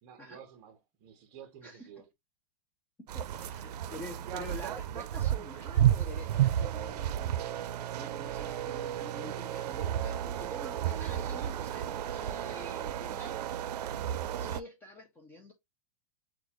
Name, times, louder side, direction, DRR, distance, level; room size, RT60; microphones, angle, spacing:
voice 1, 0.0-2.1, right 8 dB, 30° right, 1.0 m, -52 dB
voice 2, 3.1-7.4 8.0-13.4 14.4-15.5, left 1 dB, 10° left, 0.6 m, -47 dB
sound 1, 3.1-14.6, right 11 dB, 85° right, 0.5 m, -32 dB
6.4 x 2.4 x 2.9 m
supercardioid pair, 170°, 20 cm